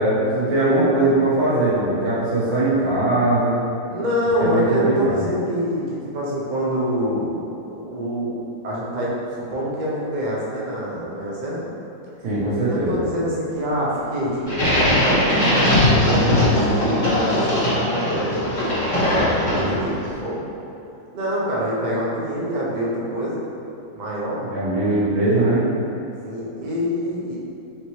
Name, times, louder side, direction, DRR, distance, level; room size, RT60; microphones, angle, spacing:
voice 1, 0.0-3.6 4.4-5.2 12.2-13.0 19.5-19.9 24.5-25.6, right 2 dB, 85° right, -9 dB, 1.9 m, -20 dB
voice 2, 3.9-7.4 7.7-8.4 8.6-9.1 9.5-11.6 12.7-20.4 21.1-23.4 23.9-24.4 26.2-27.4, equal, 70° right, -6 dB, 0.4 m, -26 dB
sound 1, 14.5-20.0, left 1 dB, 75° left, 2.1 m, -19 dB
5.0 x 3.1 x 2.8 m, 2.7 s
omnidirectional pair, 2.0 m